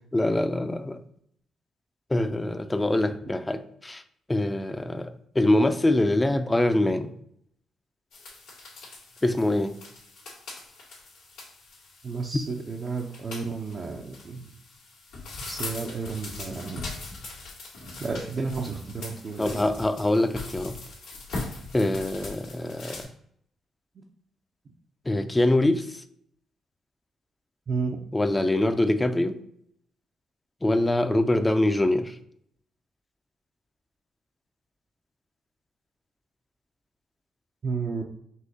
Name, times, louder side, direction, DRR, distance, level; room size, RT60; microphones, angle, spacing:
voice 1, 0.1-1.0 2.1-4.0 4.3-7.1 9.2-9.8 12.3-12.4 19.4-20.8 21.7-23.1 25.1-26.0 28.1-29.4 30.6-32.2, left 1 dB, 20° left, 10 dB, 0.5 m, -24 dB
sound 1, 8.1-23.0, left 3 dB, 85° left, 1.6 m, -41 dB
voice 2, 12.0-14.5 15.4-16.8 18.0-19.6 24.0-24.1 27.7-28.0 37.6-38.0, right 4 dB, 50° right, 0 dB, 0.6 m, -32 dB
5.5 x 2.8 x 2.7 m, 0.70 s
supercardioid pair, 50°, 0 cm